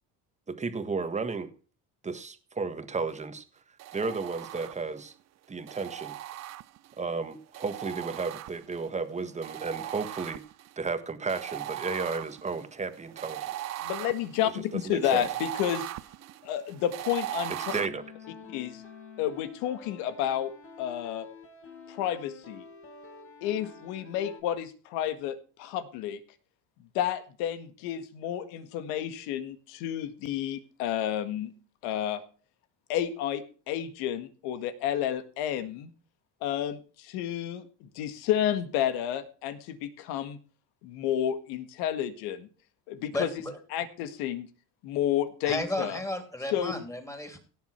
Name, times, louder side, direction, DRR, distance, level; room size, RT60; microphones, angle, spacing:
voice 1, 0.5-1.5 2.0-3.4 3.9-5.1 5.5-6.1 7.0-10.4 10.8-13.5 14.5-15.2 17.6-18.0, right 4 dB, 20° right, 10 dB, 1.6 m, -33 dB
sound 1, 3.8-5.1 5.7-7.0 7.5-8.9 9.4-10.7 11.3-17.9, right 13 dB, 45° right, 0.7 m, -39 dB
voice 2, 13.8-15.9 16.4-17.5 18.5-18.8 19.2-20.5 20.8-21.3 21.9-22.6 23.4-26.2 26.9-31.5 31.8-32.2 32.9-35.9 36.4-40.4 40.8-42.5 42.9-43.3 43.7-44.5 44.8-46.0 46.5-46.8, left 10 dB, 80° left, 10 dB, 1.9 m, -31 dB
sound 2, 17.2-24.4, left 5 dB, 35° left, 3.9 m, -48 dB
voice 3, 43.1-43.6 45.4-47.4, left 1 dB, 10° left, 5 dB, 3.4 m, -33 dB
17.0 x 7.2 x 4.5 m, 0.38 s
cardioid pair, 120°, 38 cm